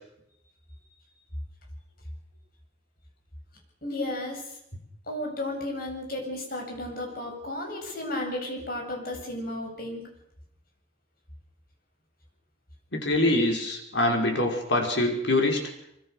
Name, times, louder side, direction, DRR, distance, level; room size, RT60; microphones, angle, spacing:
voice 1, 3.8-4.6 5.1-10.1, left 1 dB, 55° left, 2 dB, 7.8 m, -33 dB
voice 2, 12.9-15.6, left 1 dB, 75° left, 2 dB, 5.7 m, -24 dB
24.0 x 24.0 x 6.7 m, 0.78 s
head